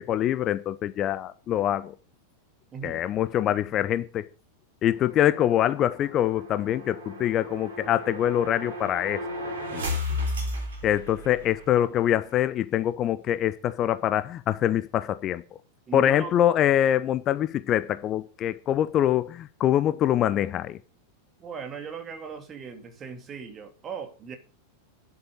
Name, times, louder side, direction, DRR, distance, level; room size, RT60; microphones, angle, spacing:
voice 1, 0.0-1.9 2.8-4.2 4.8-9.2 9.7-9.9 10.8-15.4 15.9-20.8, left 11 dB, 30° left, 0.6 m, -24 dB
voice 2, 2.7-3.1 15.9-16.4 21.4-24.4, right 6 dB, 25° right, 2.5 m, -38 dB
sound 1, 4.9-11.7, left 1 dB, 65° right, 3.6 m, -34 dB
10.0 x 7.9 x 6.6 m
figure-of-eight pair, 90°, 0 cm